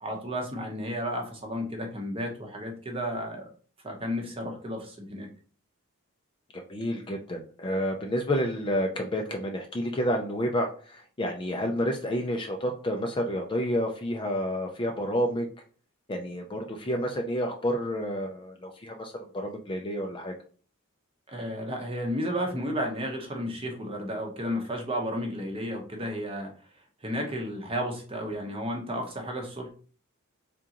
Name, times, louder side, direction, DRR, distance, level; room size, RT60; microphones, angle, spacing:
voice 1, 0.0-3.5 3.8-5.3 21.3-26.5 27.0-29.7, equal, 25° right, 2 dB, 0.8 m, -32 dB
voice 2, 6.5-15.5 16.1-20.3, equal, 20° left, 3 dB, 0.4 m, -30 dB
3.8 x 3.6 x 2.9 m, 0.41 s
head